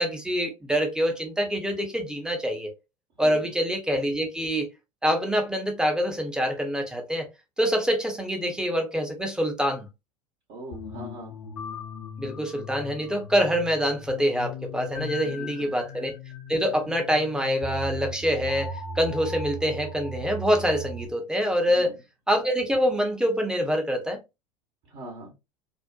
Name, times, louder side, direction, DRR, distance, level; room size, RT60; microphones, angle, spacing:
voice 1, 0.0-2.7 3.2-4.7 5.0-7.3 7.6-9.9 12.2-16.2 16.5-21.9 22.3-24.2, equal, 5° right, 0.7 m, -25 dB
voice 2, 10.5-11.4 15.2-15.7 21.7-21.9 24.8-25.3, right 1 dB, 55° right, 1.0 m, -41 dB
sound 1, 10.7-21.1, left 1 dB, 75° left, 0.6 m, -38 dB
2.5 x 2.1 x 2.4 m
figure-of-eight pair, 80°, 17 cm